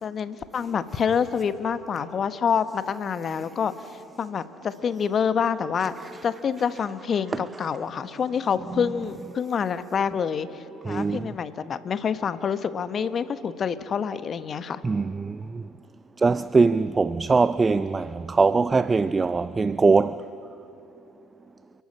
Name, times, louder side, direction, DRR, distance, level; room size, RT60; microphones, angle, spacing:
voice 1, 0.0-3.7 4.2-5.9 6.2-14.8, left 7 dB, 40° left, 1.1 m, -27 dB
voice 2, 10.9-11.3 14.8-15.6 16.2-20.2, right 4 dB, 25° right, 0.4 m, -22 dB
29.5 x 11.5 x 8.7 m
figure-of-eight pair, 60°, 0 cm